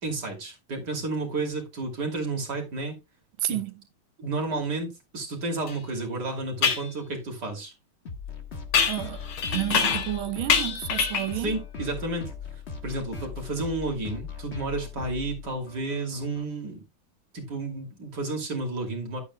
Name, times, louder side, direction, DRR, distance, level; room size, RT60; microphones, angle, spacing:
voice 1, 0.0-3.0 3.5-3.6 4.2-7.7 11.4-12.3 12.8-16.8 17.3-19.2, right 2 dB, 50° right, 3.3 m, -31 dB
voice 2, 3.4-3.7 8.9-11.6, right 15 dB, 75° right, 1.5 m, -31 dB
sound 1, 5.7-5.8 6.6-6.9 8.7-10.2 10.5-11.4, left 7 dB, 75° left, 2.3 m, -25 dB
sound 2, 8.1-16.4, left 6 dB, 35° left, 1.5 m, -39 dB
12.0 x 9.0 x 2.3 m
omnidirectional pair, 2.4 m